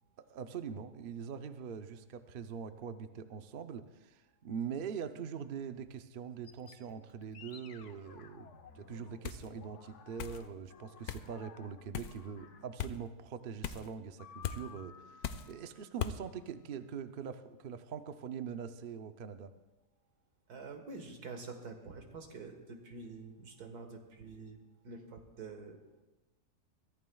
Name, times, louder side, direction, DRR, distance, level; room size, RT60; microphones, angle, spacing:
voice 1, 0.2-8.5 8.7-19.5, right 7 dB, 55° right, 9 dB, 0.6 m, -43 dB
sound 1, 6.4-13.0 14.2-16.8, left 7 dB, 55° left, 1.0 m, -56 dB
sound 2, 9.2-9.5 10.2-10.4 11.1-11.3 11.9-12.2 12.8-13.0 13.6-13.9 14.4-14.6 15.2-15.5 16.0-16.2, left 8 dB, 75° left, 1.1 m, -38 dB
voice 2, 20.5-24.6 24.8-26.0, right 4 dB, 80° right, 4 dB, 2.0 m, -47 dB
22.5 x 14.5 x 2.3 m, 1.1 s
omnidirectional pair, 1.6 m